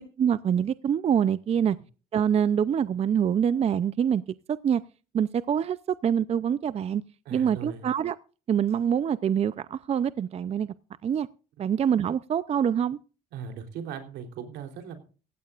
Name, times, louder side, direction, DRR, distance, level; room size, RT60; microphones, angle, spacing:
voice 1, 0.0-1.8 2.1-4.2 4.6-4.8 5.1-7.0 7.3-8.2 8.5-10.7 11.0-11.3 11.6-13.0, right 8 dB, 40° right, 0.5 m, -25 dB
voice 2, 7.3-7.9 13.3-15.0, right 7 dB, 85° right, 3.5 m, -38 dB
17.5 x 15.5 x 2.5 m
cardioid pair, 110°, 17 cm